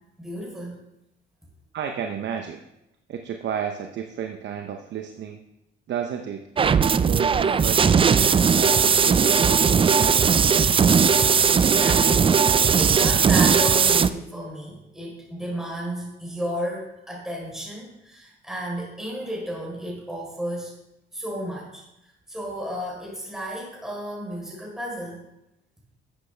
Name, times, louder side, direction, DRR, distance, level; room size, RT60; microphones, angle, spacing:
voice 1, 0.2-0.8 11.5-20.8 21.1-21.8 22.3-25.2, equal, ahead, -4 dB, 3.7 m, -33 dB
voice 2, 1.7-2.6 3.1-5.4 5.9-6.5 7.0-10.5, right 8 dB, 65° right, 6 dB, 0.7 m, -32 dB
sound 1, 6.6-14.1, right 6 dB, 25° right, 0.4 m, -18 dB
11.5 x 7.9 x 3.3 m, 0.89 s
cardioid pair, 90°, 20 cm